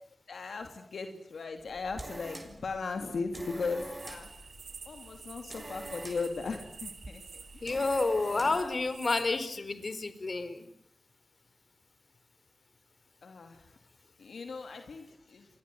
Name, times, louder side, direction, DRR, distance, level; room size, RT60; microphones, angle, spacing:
voice 1, 0.3-4.5 4.8-7.6 8.3-8.8 13.2-13.7 14.2-15.5, left 4 dB, 85° left, 6 dB, 3.1 m, -38 dB
sound 1, 1.6-8.7, right 2 dB, 35° right, 7.0 m, -47 dB
sound 2, 4.0-9.5, right 5 dB, 85° right, 3.8 m, -48 dB
voice 2, 7.6-10.6, left 3 dB, 55° left, 12 dB, 4.4 m, -30 dB
30.0 x 24.5 x 8.0 m, 0.65 s
cardioid pair, 55°, 0 cm